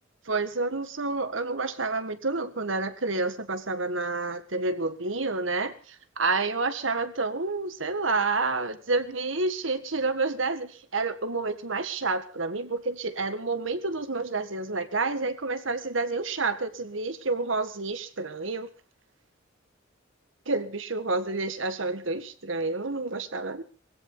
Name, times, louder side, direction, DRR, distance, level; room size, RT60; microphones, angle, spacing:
voice 1, 0.3-18.7 20.5-23.6, right 3 dB, 85° right, 10 dB, 1.8 m, -29 dB
21.5 x 16.0 x 4.0 m, 0.36 s
head